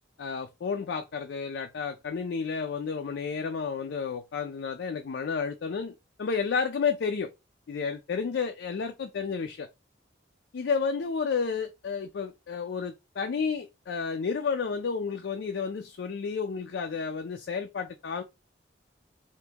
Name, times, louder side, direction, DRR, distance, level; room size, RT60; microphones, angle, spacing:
voice 1, 0.2-7.3 7.7-9.7 10.5-18.2, left 5 dB, 75° left, 0.4 m, -31 dB
2.9 x 2.6 x 3.4 m
head